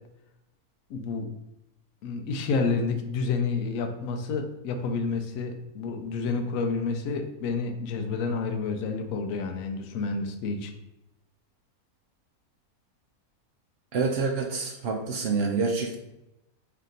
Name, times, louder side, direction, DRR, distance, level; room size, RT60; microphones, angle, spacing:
voice 1, 0.9-1.3 2.0-10.7, left 4 dB, 70° left, 5 dB, 0.9 m, -29 dB
voice 2, 13.9-16.0, right 4 dB, 90° right, 1 dB, 0.5 m, -27 dB
3.4 x 2.8 x 3.8 m, 0.90 s
omnidirectional pair, 1.6 m